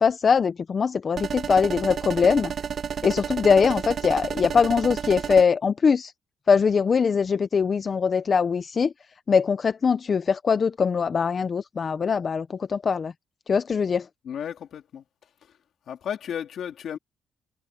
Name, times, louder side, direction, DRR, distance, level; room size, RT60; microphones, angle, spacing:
voice 1, 0.0-2.5 3.0-6.1 6.5-8.9 9.3-13.1 13.5-14.1, left 6 dB, 30° left, 0.4 m, -22 dB
sound 1, 1.2-5.4, right 7 dB, 40° right, 1.3 m, -31 dB
voice 2, 14.2-15.0 15.9-17.0, left 9 dB, 55° left, 2.9 m, -33 dB
cardioid pair, 160°, 0 cm